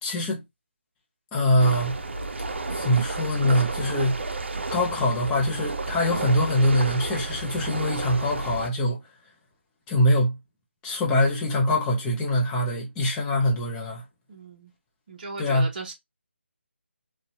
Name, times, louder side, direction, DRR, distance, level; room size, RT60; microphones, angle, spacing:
voice 1, 0.0-0.4 1.3-2.0 2.7-4.2 4.7-9.0 9.9-10.4 10.8-14.0 15.4-15.7, left 1 dB, 10° left, 0.7 m, -23 dB
sound 1, 1.6-8.7, right 3 dB, 65° right, 0.6 m, -32 dB
voice 2, 14.3-14.7 15.1-15.9, right 3 dB, 40° right, 1.1 m, -37 dB
3.9 x 2.4 x 2.8 m
figure-of-eight pair, 155°, 7 cm